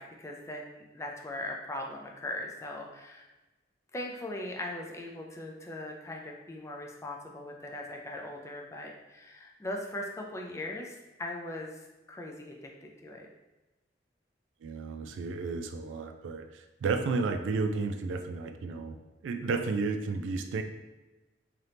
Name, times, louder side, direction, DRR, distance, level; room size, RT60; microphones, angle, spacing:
voice 1, 0.0-3.3 3.9-11.8 12.1-13.3, left 1 dB, 15° left, 0 dB, 0.3 m, -40 dB
voice 2, 14.6-19.0 19.2-20.6, right 4 dB, 85° right, 8 dB, 0.3 m, -32 dB
2.8 x 2.5 x 3.3 m, 1.1 s
head